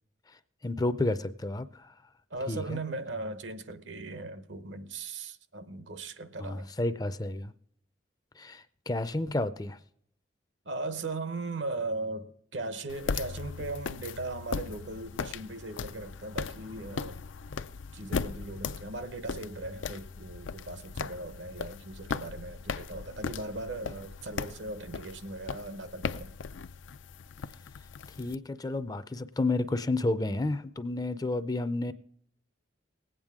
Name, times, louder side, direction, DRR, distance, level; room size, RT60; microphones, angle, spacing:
voice 1, 0.6-1.9 2.5-2.8 6.4-7.5 8.4-9.8 28.2-31.9, left 2 dB, 20° left, 0.4 m, -31 dB
voice 2, 2.3-6.7 10.7-17.2 17.9-26.4, right 2 dB, 75° right, 0.9 m, -38 dB
sound 1, 12.9-28.4, left 5 dB, 85° left, 0.5 m, -38 dB
19.5 x 8.9 x 3.6 m
head